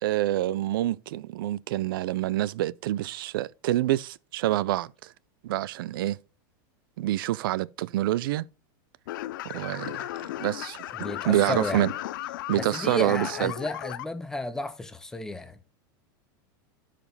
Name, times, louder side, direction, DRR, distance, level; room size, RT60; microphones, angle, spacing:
voice 1, 0.0-5.1 5.4-6.2 7.0-8.5 9.4-10.1 10.4-10.8 11.2-11.9 12.5-13.5, right 14 dB, 80° right, 0.4 m, -27 dB
sound 1, 9.1-14.0, left 15 dB, 65° left, 0.5 m, -35 dB
voice 2, 10.9-11.8 12.6-15.6, left 2 dB, 5° left, 0.4 m, -33 dB
11.0 x 5.1 x 3.3 m
supercardioid pair, 180°, 12 cm